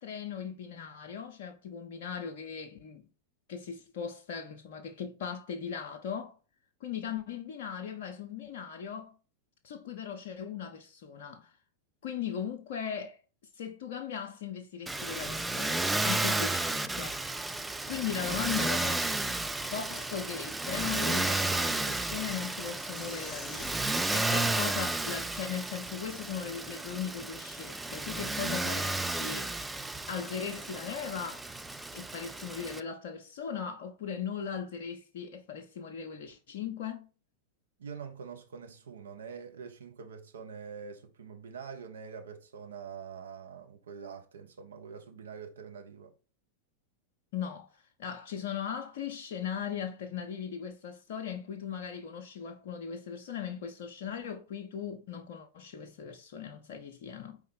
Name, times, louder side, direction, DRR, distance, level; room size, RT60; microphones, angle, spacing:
voice 1, 0.0-3.0 3.5-6.4 6.8-9.1 9.6-11.5 12.0-13.2 13.5-17.2 17.9-23.7 24.1-29.6 30.1-31.4 31.9-37.1 47.3-57.4, left 7 dB, 55° left, 0.5 m, -38 dB
Motor vehicle (road), 14.9-32.8, right 2 dB, 5° right, 0.3 m, -33 dB
sound 1, 22.9-25.6, left 5 dB, 20° left, 0.7 m, -53 dB
voice 2, 37.8-46.1, right 6 dB, 65° right, 0.8 m, -45 dB
4.6 x 3.3 x 3.2 m
figure-of-eight pair, 90°, 0 cm